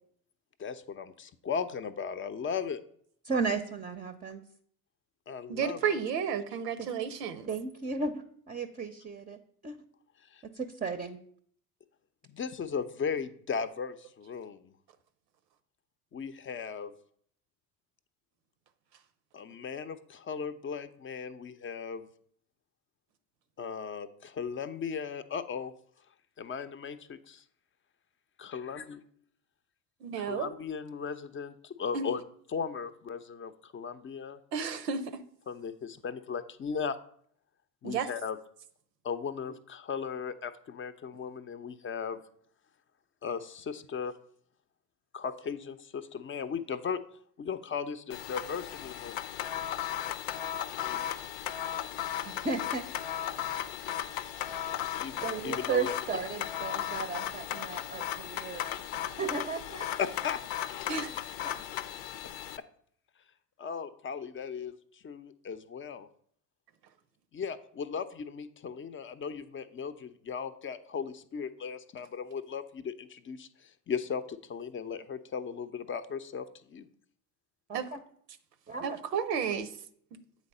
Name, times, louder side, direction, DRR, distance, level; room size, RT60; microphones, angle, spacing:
voice 1, 0.6-2.8 5.3-5.9 10.3-10.4 12.3-14.7 16.1-16.9 19.3-22.1 23.6-25.7 26.4-27.4 28.4-29.0 30.2-32.2 32.5-34.4 35.5-37.0 37.8-38.4 39.0-42.2 43.2-44.2 45.1-47.0 47.4-49.2 54.9-55.9 60.0-60.4 63.6-66.1 67.3-76.9, left 6 dB, 25° left, 11 dB, 0.6 m, -37 dB
voice 2, 3.2-4.4 6.8-6.9 7.5-8.1 8.5-9.4 9.6-9.8 10.4-11.2 52.2-52.8 55.2-58.7 58.9-59.9 60.9-61.0 61.4-61.6 77.7-78.0 78.7-79.0, right 4 dB, 20° right, 7 dB, 0.6 m, -35 dB
voice 3, 5.5-7.5 30.0-30.5 31.9-32.1 34.5-35.0 37.8-38.1 60.9-61.1 77.7-77.9 78.8-79.7, right 7 dB, 85° right, 12 dB, 0.8 m, -32 dB
sound 1, 48.1-62.6, left 11 dB, 65° left, 0.7 m, -36 dB
8.2 x 4.0 x 5.4 m, 0.62 s
hypercardioid pair, 70°, 47 cm